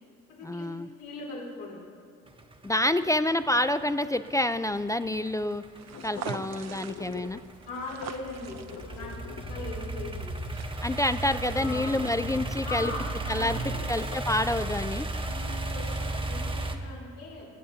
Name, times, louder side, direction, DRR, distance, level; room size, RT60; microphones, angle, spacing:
voice 1, 0.4-0.9 2.6-5.6 6.0-7.4 10.8-12.9 13.3-13.6 13.9-15.1, left 1 dB, 10° left, 11 dB, 0.3 m, -28 dB
voice 2, 1.0-1.8 7.7-9.1 9.5-10.4 11.5-12.2 12.6-13.9 15.2-17.5, left 3 dB, 85° left, -4 dB, 3.3 m, -40 dB
sound 1, 2.3-16.8, right 2 dB, 20° right, 1.0 m, -34 dB
sound 2, 4.6-14.5, left 9 dB, 55° left, 0.6 m, -47 dB
sound 3, 5.8-11.5, right 7 dB, 60° right, 0.8 m, -44 dB
23.0 x 8.6 x 2.8 m, 2.4 s
cardioid pair, 90°, 30 cm